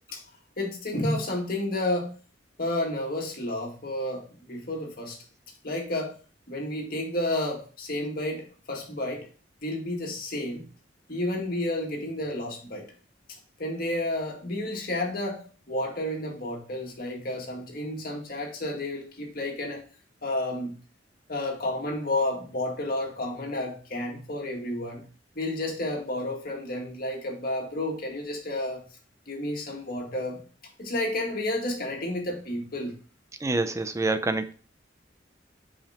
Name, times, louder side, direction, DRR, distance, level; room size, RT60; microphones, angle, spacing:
voice 1, 0.6-2.1 2.6-5.2 5.6-6.1 6.5-9.3 9.6-10.7 11.1-12.9 13.6-19.8 20.2-20.8 21.3-25.1 25.4-28.8 29.3-30.4 30.8-33.0, left 1 dB, 50° left, 2.0 m, -31 dB
voice 2, 33.4-34.5, right 2 dB, 15° right, 0.5 m, -26 dB
5.9 x 5.0 x 4.3 m
head